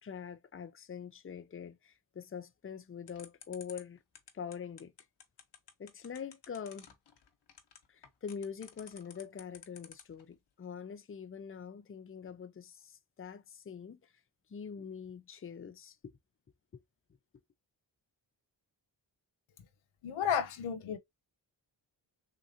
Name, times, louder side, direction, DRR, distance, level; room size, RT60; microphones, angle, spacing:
voice 1, 0.0-4.0 4.3-4.9 5.8-6.9 7.9-14.1 14.5-16.2 16.7-16.8, left 7 dB, 25° left, 0.6 m, -44 dB
sound 1, 3.1-10.2, left 7 dB, 60° left, 1.2 m, -52 dB
voice 2, 20.0-21.0, left 8 dB, 85° left, 0.8 m, -32 dB
3.6 x 2.9 x 2.7 m
cardioid pair, 50°, 47 cm